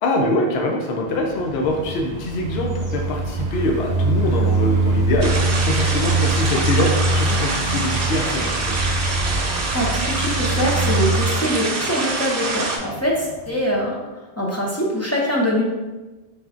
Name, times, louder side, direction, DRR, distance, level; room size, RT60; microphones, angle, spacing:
voice 1, 0.0-5.3 5.6-8.8, left 2 dB, 70° left, 1 dB, 0.8 m, -24 dB
sound 1, 1.1-13.8, right 2 dB, 85° right, 0.9 m, -33 dB
sound 2, 1.5-11.2, right 2 dB, 20° right, 0.7 m, -23 dB
sound 3, 5.2-12.8, right 3 dB, 60° right, 0.8 m, -25 dB
voice 2, 9.7-14.0 14.4-15.7, equal, 20° left, -4 dB, 0.4 m, -23 dB
4.2 x 3.4 x 2.4 m, 1.2 s
omnidirectional pair, 1.1 m